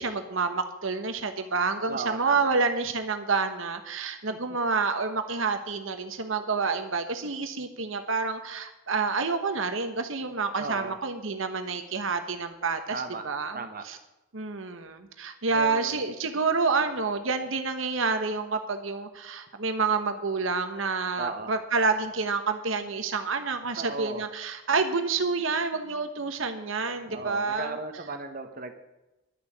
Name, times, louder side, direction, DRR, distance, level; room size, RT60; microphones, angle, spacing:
voice 1, 0.0-14.0 14.3-27.8, right 4 dB, 70° right, 7 dB, 1.1 m, -28 dB
voice 2, 1.9-2.5 4.3-4.4 10.6-11.0 12.9-13.2 13.5-13.8 15.5-16.1 21.2-21.5 23.8-24.2 27.1-28.7, right 3 dB, 40° right, 7 dB, 1.3 m, -36 dB
11.5 x 6.9 x 9.7 m, 0.97 s
head